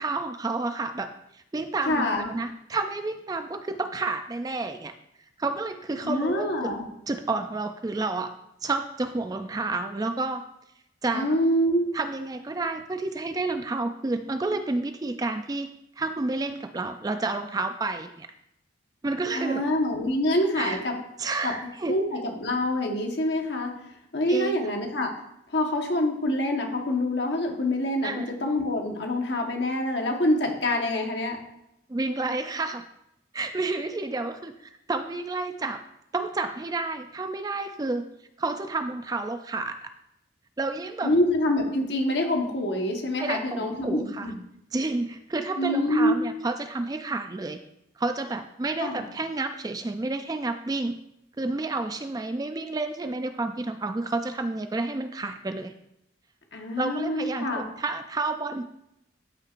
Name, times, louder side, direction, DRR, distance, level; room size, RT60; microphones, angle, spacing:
voice 1, 0.0-4.9 5.4-6.7 7.1-8.3 8.6-10.4 11.0-11.4 11.9-15.7 16.0-18.3 19.0-19.6 20.6-20.8 21.2-22.0 24.3-24.7 28.0-28.3 31.9-32.8 33.3-35.8 36.1-38.1 38.4-39.7 40.6-41.1 43.1-44.3 44.7-47.6 48.0-51.0 51.4-55.7 56.8-58.6, right 3 dB, 20° right, 7 dB, 0.3 m, -30 dB
voice 2, 1.9-2.3 6.0-6.8 11.1-11.9 19.3-21.0 21.4-21.5 21.9-23.7 24.1-25.1 25.5-31.4 41.0-44.4 45.6-46.2 48.8-49.0 56.5-57.6, left 1 dB, 60° left, 2 dB, 1.3 m, -26 dB
12.5 x 5.8 x 2.5 m, 0.82 s
head